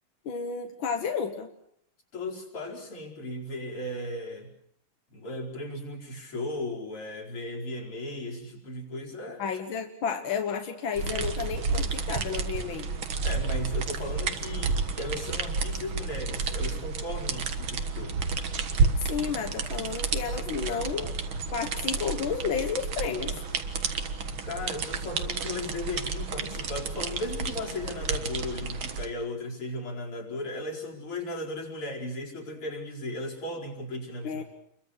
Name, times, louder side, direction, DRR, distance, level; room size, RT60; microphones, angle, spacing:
voice 1, 0.3-1.5 9.4-12.9 19.1-21.2 21.5-23.4 34.2-34.4, left 6 dB, 65° left, 4 dB, 2.2 m, -31 dB
voice 2, 2.1-4.5 5.1-9.4 13.2-18.2 24.5-34.4, left 1 dB, 90° left, -2 dB, 5.7 m, -36 dB
sound 1, 11.0-29.1, right 4 dB, 70° right, 2.4 m, -31 dB
29.0 x 23.0 x 6.5 m, 0.69 s
omnidirectional pair, 2.4 m